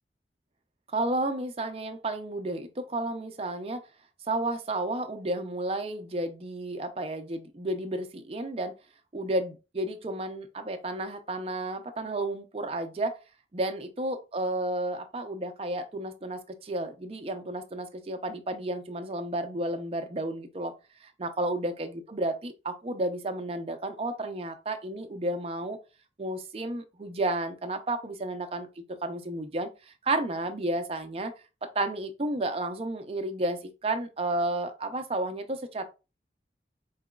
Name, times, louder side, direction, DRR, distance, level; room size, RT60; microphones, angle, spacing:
voice 1, 0.9-3.8 4.3-8.7 9.1-13.2 13.5-20.7 21.0-25.8 26.2-31.3 31.6-35.8, right 2 dB, 35° right, 0.5 m, -32 dB
4.7 x 2.9 x 2.3 m
head